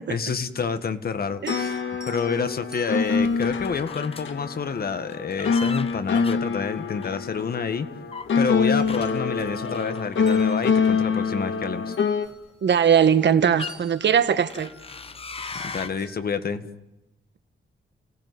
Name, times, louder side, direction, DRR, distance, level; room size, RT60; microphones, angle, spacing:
voice 1, 0.0-1.8 2.0-7.9 8.4-11.9 15.6-16.7, left 5 dB, 50° left, 1.7 m, -28 dB
sound 1, 1.2-12.3, left 5 dB, 80° left, 1.9 m, -25 dB
sound 2, 1.3-4.7 6.3-6.4 6.9-8.2 8.5-9.8 10.1-13.3 13.6-16.3, right 2 dB, 5° right, 4.2 m, -48 dB
sound 3, 2.8-4.4 5.1-7.6 8.1-11.4 12.2-12.4 13.0-13.8 14.5-15.9, left 4 dB, 30° left, 1.0 m, -40 dB
voice 2, 12.6-14.7, right 8 dB, 65° right, 1.5 m, -20 dB
29.5 x 19.0 x 9.7 m
wide cardioid pair, 170°, 20 cm